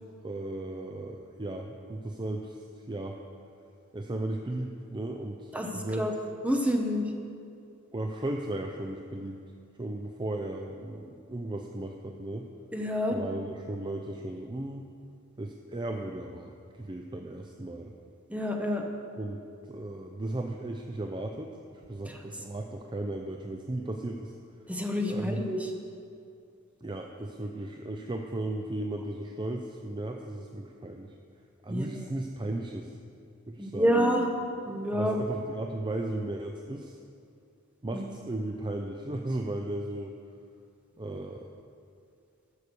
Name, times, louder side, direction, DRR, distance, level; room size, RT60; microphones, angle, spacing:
voice 1, 0.2-3.2 3.9-6.1 7.9-9.4 9.8-12.5 13.1-14.9 15.4-17.9 19.2-19.4 19.7-24.3 25.1-25.4 26.8-31.1 31.6-32.9 33.5-34.0 34.9-37.0 37.8-40.2 41.0-41.5, right 1 dB, 25° right, 3 dB, 0.5 m, -36 dB
voice 2, 5.5-6.1 6.4-7.0 12.7-13.2 18.3-18.8 22.1-22.2 24.7-25.7 31.7-31.9 33.6-34.2 34.7-35.2 37.9-38.1, equal, 5° right, 2 dB, 1.1 m, -28 dB
13.0 x 6.5 x 6.9 m, 2.4 s
head